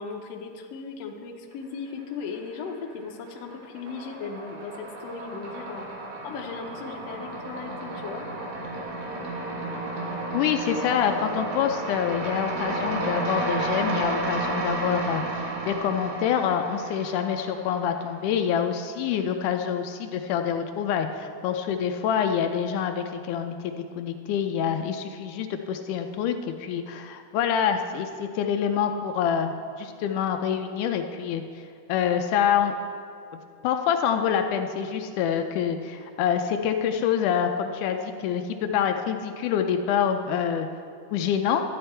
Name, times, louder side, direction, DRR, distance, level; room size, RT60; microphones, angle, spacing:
voice 1, 0.0-5.9 6.2-8.3, left 5 dB, 65° left, 3 dB, 1.7 m, -37 dB
sound 1, 2.0-2.7 3.0-18.2, right 2 dB, 70° right, 3.0 m, -32 dB
voice 2, 10.3-15.2 15.7-31.4 31.9-32.7 33.3-40.7 41.1-41.6, left 8 dB, 80° left, 6 dB, 2.1 m, -26 dB
13.0 x 9.4 x 4.4 m, 2.4 s
omnidirectional pair, 3.6 m